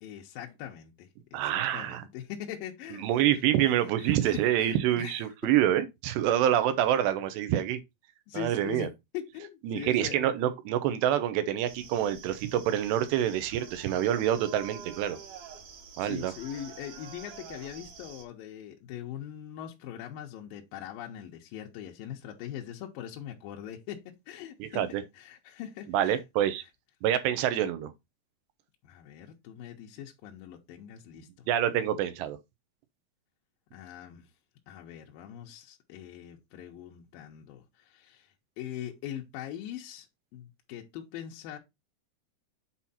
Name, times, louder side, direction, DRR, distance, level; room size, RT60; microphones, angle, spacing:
voice 1, 0.0-3.7 4.0-5.3 8.3-10.2 16.0-26.2 28.8-31.5 33.7-34.3 34.7-40.1 40.3-41.6, left 10 dB, 75° left, 2.2 m, -42 dB
voice 2, 1.3-2.0 3.0-7.8 8.3-8.9 9.6-15.2 16.0-16.3 24.6-25.0 25.9-26.6 27.0-27.9 31.5-32.4, right 11 dB, 80° right, 3.0 m, -27 dB
sound 1, 11.6-18.3, right 6 dB, 60° right, 2.5 m, -47 dB
7.5 x 4.4 x 4.1 m
omnidirectional pair, 4.9 m